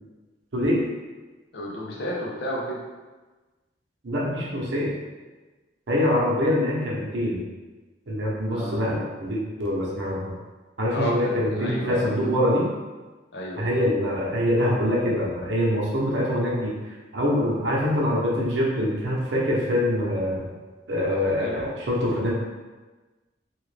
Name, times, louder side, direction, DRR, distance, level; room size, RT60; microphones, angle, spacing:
voice 1, 1.5-2.8 8.5-8.8 10.9-12.4 13.3-13.8 21.1-21.8, equal, 65° left, -2 dB, 0.6 m, -32 dB
voice 2, 4.0-4.9 5.9-7.4 8.1-10.3 10.8-12.6 13.6-20.5 20.9-22.3, left 1 dB, 75° right, -4 dB, 0.8 m, -24 dB
3.0 x 2.4 x 3.3 m, 1.3 s
head